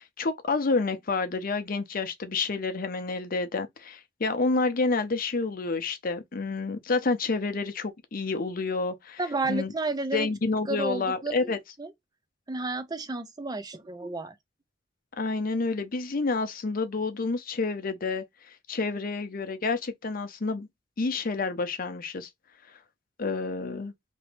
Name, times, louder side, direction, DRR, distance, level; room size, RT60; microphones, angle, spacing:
voice 1, 0.0-9.2 9.5-9.7 10.1-11.6 15.2-18.2 18.7-20.7 21.0-22.3 23.2-23.9, left 3 dB, 45° left, 0.6 m, -29 dB
voice 2, 9.2-10.3 10.7-11.9 12.5-14.4, right 2 dB, 20° right, 0.5 m, -32 dB
2.9 x 2.7 x 3.2 m
head